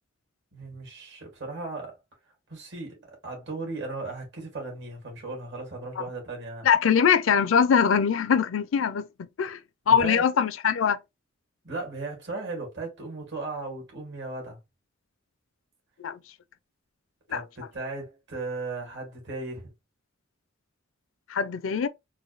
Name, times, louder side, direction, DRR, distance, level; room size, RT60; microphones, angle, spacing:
voice 1, 0.5-2.0 2.5-6.7 9.9-10.2 11.6-14.6 17.3-19.7, right 3 dB, 60° right, 2.1 m, -36 dB
voice 2, 6.6-9.6 9.9-11.0 16.0-16.2 17.3-17.4 21.3-21.9, left 7 dB, 70° left, 0.4 m, -22 dB
3.9 x 2.6 x 3.1 m
head